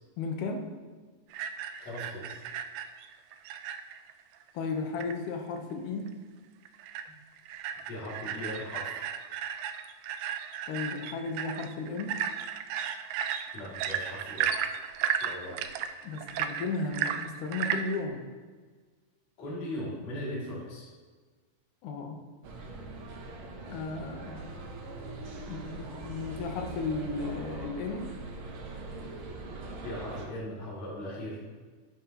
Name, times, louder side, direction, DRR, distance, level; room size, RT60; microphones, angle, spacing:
voice 1, 0.2-0.7 4.5-6.1 10.7-12.1 16.0-18.3 21.8-22.2 23.7-24.8 25.5-28.1, left 4 dB, 85° left, 3 dB, 2.6 m, -35 dB
sound 1, 1.3-4.1 4.4-4.5 4.8-5.1 5.6-5.7 6.1-6.2 6.7-7.1 7.4-18.0, right 8 dB, 85° right, 1.5 m, -34 dB
voice 2, 1.8-2.4 7.1-7.2 7.9-9.0 13.5-14.5 15.2-15.6 19.4-20.9 29.8-31.4, left 1 dB, 60° left, -7 dB, 3.9 m, -38 dB
sound 2, 22.4-30.3, right 2 dB, 65° right, 1.3 m, -41 dB
11.0 x 9.6 x 3.0 m, 1.5 s
omnidirectional pair, 3.5 m